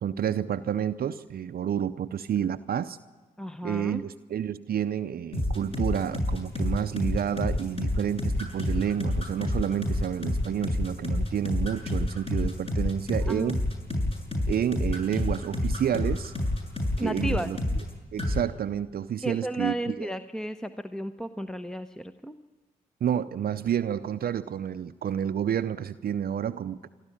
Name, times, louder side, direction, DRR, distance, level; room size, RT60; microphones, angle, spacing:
voice 1, 0.0-3.0 3.6-13.6 14.5-16.3 17.0-17.6 18.1-20.1 23.0-26.9, right 9 dB, 55° right, 11 dB, 0.6 m, -29 dB
voice 2, 3.4-4.0 13.3-13.5 17.0-17.5 19.2-22.4, right 1 dB, 5° left, 10 dB, 0.9 m, -33 dB
sound 1, 5.3-17.9 18.2-18.4, left 1 dB, 30° left, 6.9 m, -28 dB
28.0 x 12.0 x 8.7 m, 1.4 s
hypercardioid pair, 40°, 18 cm